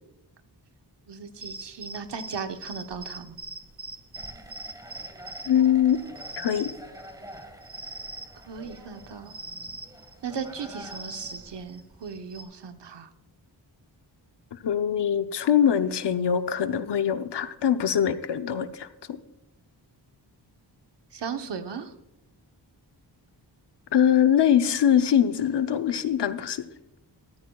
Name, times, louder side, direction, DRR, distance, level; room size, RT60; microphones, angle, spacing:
voice 1, 1.1-3.4 8.4-9.3 10.2-13.1 21.1-21.9, right 6 dB, 75° right, 7 dB, 1.0 m, -37 dB
sound 1, 1.3-12.4, right 3 dB, 30° right, 1.4 m, -42 dB
sound 2, 4.1-11.6, right 1 dB, 10° right, 1.4 m, -47 dB
voice 2, 5.4-6.0 6.4-6.7 14.5-19.2 23.9-26.7, left 9 dB, 70° left, 10 dB, 0.8 m, -23 dB
14.0 x 13.5 x 2.3 m, 0.90 s
wide cardioid pair, 115°, 43 cm